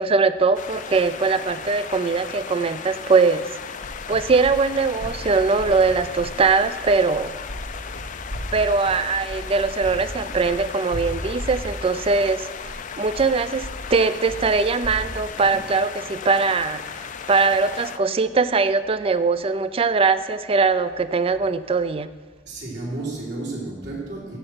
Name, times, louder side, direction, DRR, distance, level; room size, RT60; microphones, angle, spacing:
voice 1, 0.0-3.5 4.1-7.3 8.5-16.8 17.3-22.1, right 4 dB, 30° right, 13 dB, 0.4 m, -21 dB
sound 1, 0.5-18.0, left 7 dB, 40° left, 0.4 m, -36 dB
sound 2, 3.6-16.7, equal, 85° right, 2.2 m, -36 dB
voice 2, 22.5-24.4, right 2 dB, 60° right, -4 dB, 3.2 m, -32 dB
13.0 x 7.4 x 4.5 m, 1.4 s
head